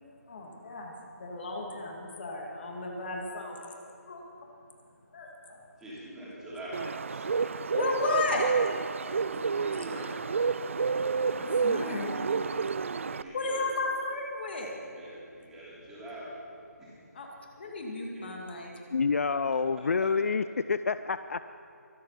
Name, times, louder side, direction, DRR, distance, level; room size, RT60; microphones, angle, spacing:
voice 1, 0.3-4.2 5.1-5.6 7.7-8.5 11.4-12.2 13.3-14.8 17.1-17.3 17.6-18.7, left 2 dB, 35° left, 0 dB, 2.3 m, -34 dB
voice 2, 5.8-6.8 7.1-7.3 9.3-10.0 13.0-13.6 14.9-16.3 16.8-16.9, right 1 dB, 5° right, -9 dB, 2.9 m, -44 dB
Bird, 6.7-13.2, right 5 dB, 50° right, 0.4 m, -30 dB
voice 3, 18.9-21.5, left 5 dB, 55° left, 12 dB, 0.4 m, -28 dB
23.5 x 8.2 x 5.8 m, 2.4 s
figure-of-eight pair, 160°, 9 cm